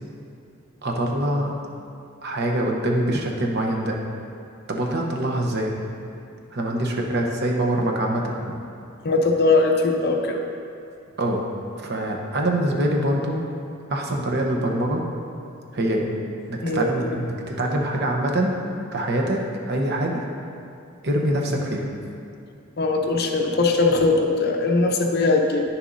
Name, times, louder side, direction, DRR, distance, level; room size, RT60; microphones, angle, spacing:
voice 1, 0.8-1.6 2.2-4.0 4.7-5.7 6.5-8.5 11.2-11.4 11.8-13.4 13.9-15.0 15.7-16.1 16.5-18.6 18.9-20.2 21.0-21.9, right 1 dB, 55° right, 0 dB, 0.8 m, -24 dB
voice 2, 9.0-10.4 16.6-17.2 22.8-25.6, left 3 dB, 50° left, 2 dB, 0.7 m, -20 dB
9.7 x 6.9 x 2.6 m, 2.6 s
head